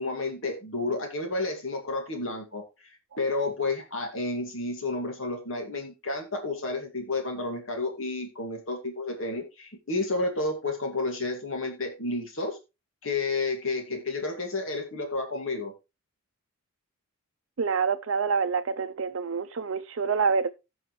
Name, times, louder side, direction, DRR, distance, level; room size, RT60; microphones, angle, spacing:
voice 1, 0.0-12.6 13.0-15.7, left 3 dB, 65° left, 2.2 m, -31 dB
voice 2, 17.6-20.5, right 5 dB, 65° right, 0.5 m, -27 dB
16.0 x 5.5 x 3.1 m
head